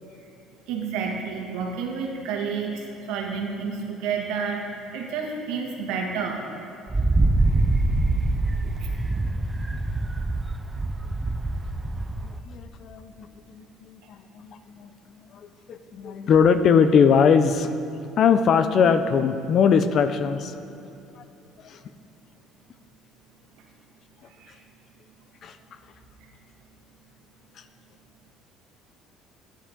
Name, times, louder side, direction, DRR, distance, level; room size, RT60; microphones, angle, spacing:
voice 1, 0.7-6.4 8.6-8.9 24.4-24.6 26.2-26.3, right 5 dB, 80° right, 1 dB, 1.7 m, -30 dB
Wind, 6.9-12.4, right 2 dB, 15° right, 0.4 m, -24 dB
voice 2, 12.5-14.9 15.2-15.3 15.7-17.7 18.2-20.5 21.2-21.3 21.6-21.8 25.4-25.5, left 6 dB, 45° left, 11 dB, 0.5 m, -21 dB
13.5 x 9.9 x 3.7 m, 2.8 s
cardioid pair, 135°, 0 cm